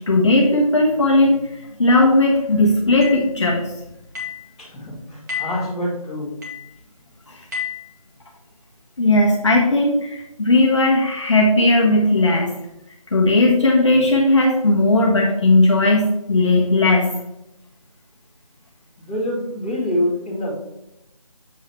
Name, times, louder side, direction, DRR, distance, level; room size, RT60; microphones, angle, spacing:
voice 1, 0.0-1.4 1.8-3.7 7.3-7.4 9.0-12.5 13.1-17.1, left 2 dB, 55° left, -2 dB, 1.3 m, -16 dB
sound 1, 3.0-3.3 4.1-4.5 5.3-5.7 6.4-6.7 7.5-7.9, left 7 dB, 30° right, 1.5 m, -30 dB
voice 2, 4.6-6.3 19.0-20.5, left 1 dB, 15° left, -10 dB, 2.1 m, -25 dB
7.4 x 3.9 x 4.4 m, 0.87 s
figure-of-eight pair, 165°, 19 cm